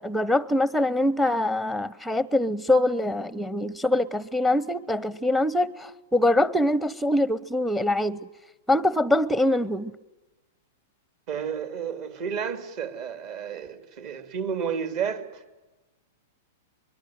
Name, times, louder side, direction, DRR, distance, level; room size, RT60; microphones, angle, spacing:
voice 1, 0.0-8.3 8.7-9.9, left 1 dB, ahead, 0.8 m, -24 dB
voice 2, 11.3-15.4, right 7 dB, 50° right, 2.9 m, -31 dB
23.5 x 21.0 x 9.3 m
hypercardioid pair, 120°, 0 cm